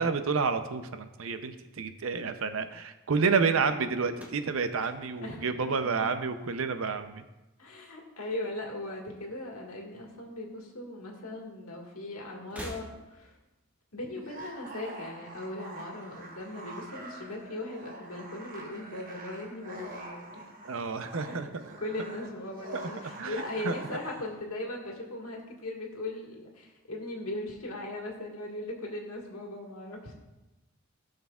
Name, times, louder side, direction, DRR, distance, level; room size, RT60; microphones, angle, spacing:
voice 1, 0.0-7.2 20.6-21.5 23.2-23.7, right 5 dB, 70° right, 9 dB, 0.6 m, -29 dB
sound 1, 4.1-6.4 6.7-7.3 8.4-9.4 9.7-9.8 10.9-11.0 12.4-13.4, equal, 5° right, 0.8 m, -48 dB
voice 2, 5.2-6.1 7.6-13.4 13.9-20.4 21.3-21.5 21.8-30.1, left 1 dB, 85° left, 0 dB, 1.7 m, -39 dB
sound 2, 14.2-24.4, right 2 dB, 40° right, 1.1 m, -45 dB
16.0 x 6.5 x 2.4 m, 1.0 s
head